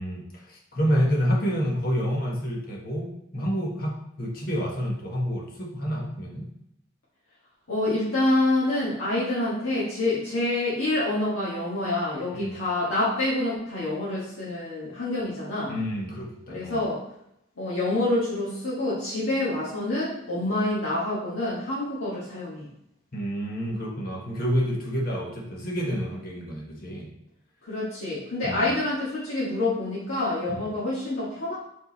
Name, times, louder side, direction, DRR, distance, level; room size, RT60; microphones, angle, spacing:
voice 1, 0.0-6.5 12.3-12.6 15.7-16.8 23.1-27.1 28.4-28.7 30.5-30.6, equal, 45° left, -1 dB, 1.4 m, -28 dB
voice 2, 7.7-15.7 16.5-17.0 17.6-22.7 27.6-31.6, left 2 dB, 90° left, -8 dB, 1.8 m, -27 dB
5.4 x 5.0 x 4.1 m, 0.78 s
head